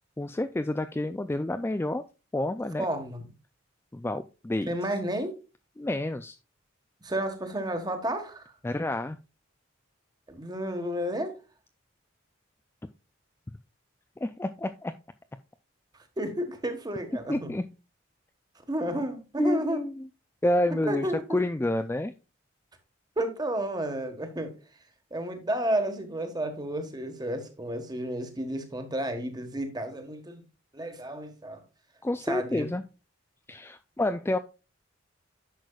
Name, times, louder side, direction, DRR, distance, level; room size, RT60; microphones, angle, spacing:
voice 1, 0.2-2.0 2.3-2.9 3.9-4.7 5.8-6.4 8.6-9.2 14.2-14.9 17.3-17.7 19.4-20.1 20.4-22.1 32.0-32.8 33.5-34.4, left 1 dB, 10° left, 0.3 m, -29 dB
voice 2, 2.8-3.2 4.7-5.3 7.0-8.4 10.3-11.3 16.2-17.5 18.7-19.8 20.8-21.2 23.2-24.5 25.1-30.4 30.7-31.6 32.2-32.7, right 1 dB, 20° right, 1.4 m, -31 dB
10.5 x 6.4 x 2.3 m
head